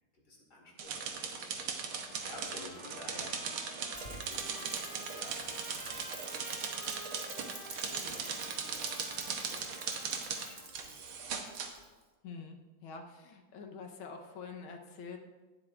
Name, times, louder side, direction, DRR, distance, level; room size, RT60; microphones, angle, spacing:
voice 1, 0.3-3.7 4.0-6.2 7.4-11.4, left 2 dB, 50° left, -3 dB, 3.2 m, -53 dB
sound 1, 0.8-11.7, right 6 dB, 85° right, 1.8 m, -39 dB
Trumpet, 2.2-10.7, equal, 20° left, 2.9 m, -51 dB
Rain, 3.9-12.0, right 3 dB, 30° right, 0.8 m, -49 dB
voice 2, 12.2-15.2, left 5 dB, 90° left, 3 dB, 1.9 m, -46 dB
18.5 x 7.7 x 2.5 m, 1.3 s
omnidirectional pair, 2.2 m